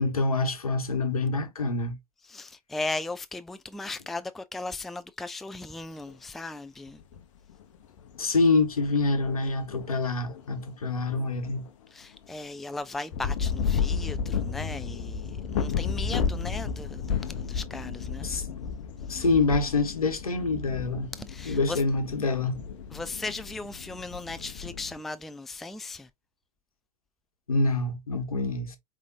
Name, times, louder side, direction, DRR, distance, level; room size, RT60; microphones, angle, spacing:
voice 1, 0.0-1.9 8.2-11.6 18.2-18.4 19.1-21.1 21.5-22.6 27.5-28.8, left 3 dB, 75° left, 1.1 m, -26 dB
voice 2, 2.2-7.0 11.9-18.3 21.2-21.8 22.9-26.1, left 2 dB, ahead, 0.3 m, -37 dB
sound 1, 6.1-6.2 6.9-7.2 7.5-11.9 12.1-12.2 13.1-25.0, left 6 dB, 55° left, 0.8 m, -33 dB
5.1 x 3.3 x 2.7 m
figure-of-eight pair, 85°, 19 cm